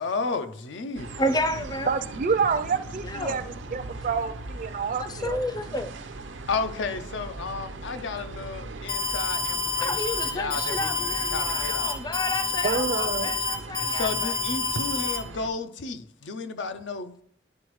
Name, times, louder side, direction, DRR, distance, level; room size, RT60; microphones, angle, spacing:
voice 1, 0.0-1.2 4.7-4.8 6.5-10.0 10.2-12.0 13.9-17.2, left 4 dB, 80° left, 0.5 m, -33 dB
sound 1, 1.0-15.5, right 2 dB, 90° right, 0.6 m, -40 dB
voice 2, 1.2-1.9 3.0-3.4 5.0-5.9 9.8-14.4, left 1 dB, 20° left, 0.4 m, -31 dB
voice 3, 1.9-3.4 3.7-5.4 12.6-13.3, right 5 dB, 45° right, 0.4 m, -27 dB
Alarm, 8.9-15.2, left 4 dB, 55° left, 1.2 m, -28 dB
11.0 x 3.9 x 3.1 m
head